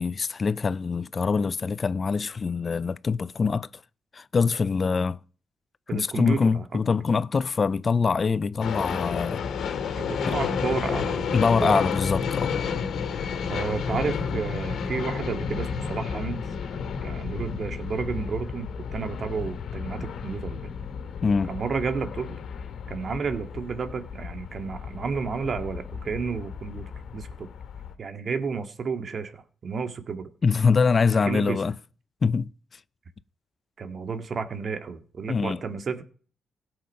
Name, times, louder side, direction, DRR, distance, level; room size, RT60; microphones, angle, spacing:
voice 1, 0.0-3.7 4.1-5.2 5.9-9.5 10.3-10.4 11.3-12.5 21.2-21.5 30.4-31.8 32.2-32.5 35.3-35.6, left 5 dB, 40° left, 0.5 m, -24 dB
voice 2, 5.9-6.7 9.9-11.9 13.5-16.4 17.0-20.7 21.5-22.4 22.9-27.5 28.0-30.3 31.2-31.6 33.8-36.0, right 5 dB, 50° right, 1.9 m, -31 dB
sound 1, 8.6-27.9, left 6 dB, 75° left, 2.2 m, -32 dB
16.5 x 7.8 x 5.6 m
cardioid pair, 70°, 0 cm